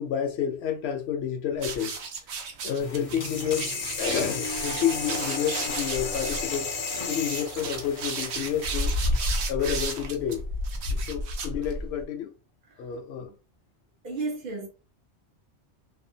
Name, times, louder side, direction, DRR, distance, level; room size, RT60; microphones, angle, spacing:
voice 1, 0.0-2.0 2.6-3.7 4.0-6.7 7.1-10.4 10.9-12.3 12.8-13.3, left 8 dB, 70° left, 0.8 m, -30 dB
sound 1, 1.6-12.0, right 1 dB, 75° right, 0.9 m, -32 dB
sound 2, 2.8-8.7, left 5 dB, 50° left, 0.4 m, -34 dB
sound 3, 4.2-10.1, equal, 35° right, 1.1 m, -39 dB
voice 2, 14.0-14.7, right 3 dB, 55° right, 0.9 m, -33 dB
2.6 x 2.2 x 2.7 m
omnidirectional pair, 1.2 m